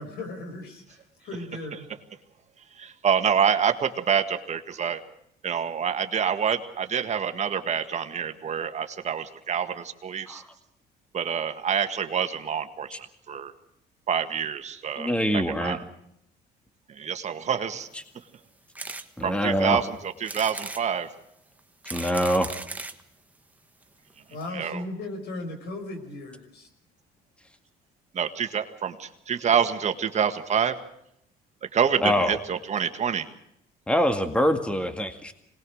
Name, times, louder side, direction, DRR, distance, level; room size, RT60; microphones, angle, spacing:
voice 1, 0.0-1.8 24.3-26.7, left 2 dB, 75° left, 6 dB, 5.8 m, -37 dB
voice 2, 2.8-5.0 5.4-10.4 11.1-12.9 13.3-13.5 14.1-15.8 16.9-17.9 19.2-21.1 24.5-24.8 28.1-30.8 31.7-33.3, right 7 dB, 40° right, 8 dB, 1.8 m, -27 dB
voice 3, 15.0-15.8 19.2-19.8 21.9-22.5 32.0-32.4 33.9-35.3, equal, 5° left, 8 dB, 2.0 m, -24 dB
sound 1, 18.8-19.1 19.6-19.7 20.2-20.8 21.6-23.0 23.8-23.9 24.1-24.2 24.4-24.5, right 2 dB, 10° right, 1.5 m, -37 dB
25.5 x 19.5 x 6.5 m, 0.76 s
cardioid pair, 110°, 17 cm